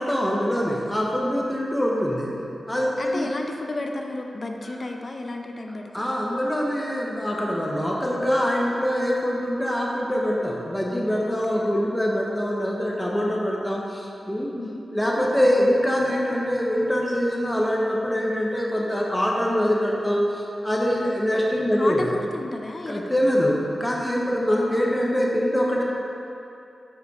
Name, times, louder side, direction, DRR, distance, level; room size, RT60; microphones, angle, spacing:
voice 1, 0.0-2.3 2.7-3.3 4.6-4.8 5.9-14.5 14.9-22.1 22.9-25.8, equal, 10° left, -3 dB, 0.9 m, -24 dB
voice 2, 3.0-6.2 11.3-11.7 14.6-14.8 21.0-21.1 21.8-23.0 24.4-24.5, left 2 dB, 45° left, 3 dB, 0.5 m, -33 dB
5.3 x 5.0 x 4.8 m, 2.7 s
wide cardioid pair, 80°, 0 cm